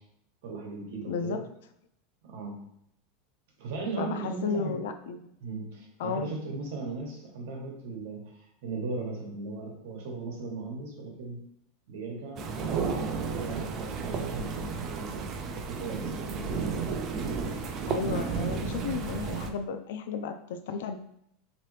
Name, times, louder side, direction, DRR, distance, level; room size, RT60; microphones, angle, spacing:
voice 1, 0.4-1.4 2.2-2.6 3.6-4.7 5.4-11.4 11.9-15.1 15.7-16.8, right 3 dB, 70° right, 1 dB, 1.1 m, -37 dB
voice 2, 1.1-1.4 4.0-5.3 6.0-6.3 17.9-21.0, left 5 dB, 75° left, 8 dB, 0.3 m, -33 dB
sound 1, 12.4-19.5, right 5 dB, 30° right, 0.4 m, -32 dB
3.7 x 2.9 x 3.2 m, 0.74 s
supercardioid pair, 155°, 0 cm